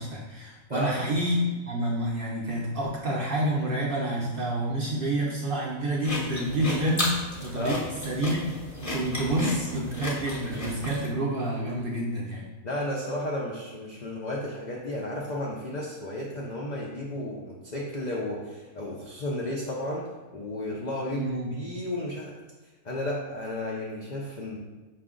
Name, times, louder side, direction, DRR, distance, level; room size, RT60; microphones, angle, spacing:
voice 1, 0.0-7.8 8.0-8.4 8.8-12.5 21.1-21.5, right 1 dB, 55° right, -3 dB, 0.6 m, -28 dB
sound 1, 6.0-11.1, left 1 dB, 15° left, 0.6 m, -33 dB
voice 2, 12.6-22.3 22.8-24.6, left 1 dB, 75° left, -3 dB, 0.4 m, -33 dB
4.9 x 2.5 x 3.6 m, 1.3 s
omnidirectional pair, 1.5 m